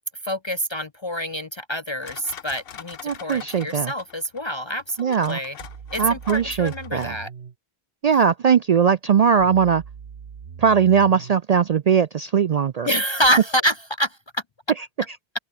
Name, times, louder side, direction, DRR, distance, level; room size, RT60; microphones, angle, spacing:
voice 1, 0.2-5.6 5.9-7.3 12.8-14.4, equal, 35° left, 0.5 m, -26 dB
sound 1, 2.0-7.1, left 8 dB, 65° left, 1.1 m, -42 dB
voice 2, 3.0-3.9 5.0-5.4 6.0-7.1 8.0-9.8 10.6-12.9, right 7 dB, 55° right, 0.4 m, -19 dB
sound 2, 5.6-7.6 9.4-11.4 13.2-13.3, right 7 dB, 75° right, 1.4 m, -40 dB
open air
omnidirectional pair, 1.1 m